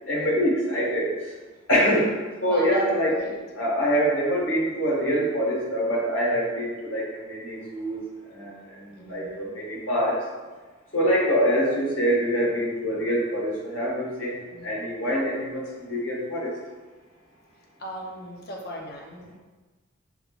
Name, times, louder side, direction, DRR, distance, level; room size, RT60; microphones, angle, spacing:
voice 1, 0.1-1.1 1.7-3.1 3.6-8.0 8.3-10.2 10.9-16.5, equal, 85° left, -4 dB, 1.4 m, -25 dB
voice 2, 2.5-3.4 9.0-9.5 14.5-14.7 17.8-19.4, equal, 50° left, -1 dB, 0.6 m, -37 dB
6.3 x 3.3 x 2.4 m, 1.3 s
head